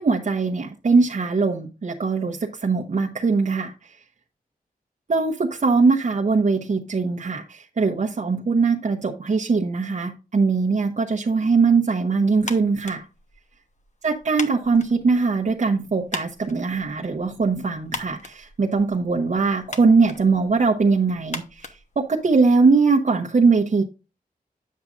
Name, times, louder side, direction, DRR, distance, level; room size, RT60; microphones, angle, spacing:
voice 1, 0.0-3.7 5.1-13.0 14.0-21.7 22.0-23.8, right 4 dB, 50° right, 0 dB, 0.9 m, -21 dB
sound 1, 12.4-22.6, left 3 dB, 50° left, 1.1 m, -40 dB
9.4 x 7.2 x 2.5 m, 0.30 s
wide cardioid pair, 115°, 15 cm